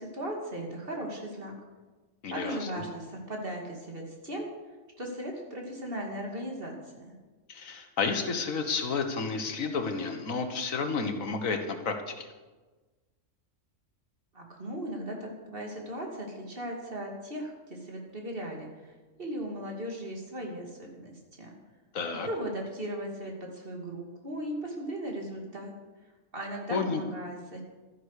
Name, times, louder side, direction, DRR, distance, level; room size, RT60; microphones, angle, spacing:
voice 1, 0.0-1.5 2.3-4.5 5.0-7.1 14.3-18.9 19.2-21.5 22.2-25.7 26.3-27.6, right 1 dB, 45° right, 0 dB, 2.6 m, -37 dB
voice 2, 2.2-2.7 7.5-12.3 21.9-22.3 26.7-27.0, left 4 dB, 85° left, 6 dB, 1.7 m, -31 dB
13.0 x 10.0 x 6.5 m, 1.3 s
omnidirectional pair, 1.4 m